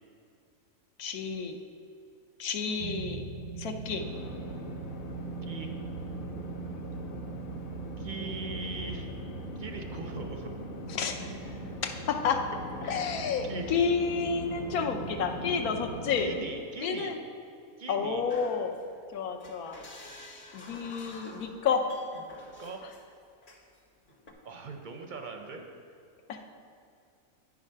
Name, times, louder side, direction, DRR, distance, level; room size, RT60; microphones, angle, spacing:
voice 1, 1.0-1.6 2.4-3.2 3.6-4.1 10.9-11.3 11.8-12.5 12.8-16.3 16.8-17.2 17.9-18.8 19.1-19.8 20.5-21.9 22.8-22.9 26.3-26.4, left 6 dB, 90° left, 4 dB, 1.2 m, -30 dB
sound 1, 2.8-16.4, right 5 dB, 90° right, 1.1 m, -41 dB
sound 2, 4.0-16.2, left 4 dB, 60° left, 0.6 m, -44 dB
voice 2, 8.0-9.1 9.6-10.5 12.8-13.0 13.4-13.7 16.2-17.1 17.8-18.2 22.6-22.8 24.4-25.6, right 3 dB, 55° right, 4 dB, 0.5 m, -40 dB
sound 3, 18.3-19.1 19.4-23.1 23.4-23.8 24.1-24.3, left 2 dB, 40° left, 1.0 m, -49 dB
9.3 x 4.9 x 5.5 m, 2.5 s
omnidirectional pair, 1.5 m